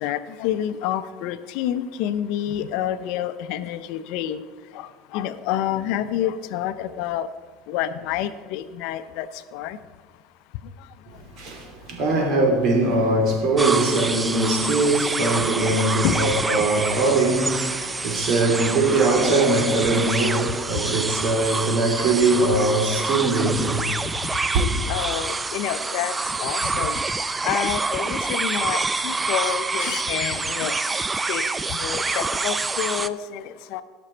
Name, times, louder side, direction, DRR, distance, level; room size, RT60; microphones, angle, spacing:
voice 1, 0.0-4.4 4.8-4.9 5.1-7.3 7.7-9.3 9.5-9.8 16.0-16.2 23.6-23.7 24.9-26.1 26.4-27.0 27.4-30.7 31.3-31.4 31.7-33.4 33.7-33.8, left 11 dB, 70° left, 0.5 m, -28 dB
voice 2, 11.3-23.9 24.5-24.7, right 2 dB, 50° right, 2.9 m, -21 dB
sound 1, 13.6-33.1, right 3 dB, 15° right, 0.4 m, -27 dB
17.5 x 6.1 x 4.4 m
supercardioid pair, 125°, 0 cm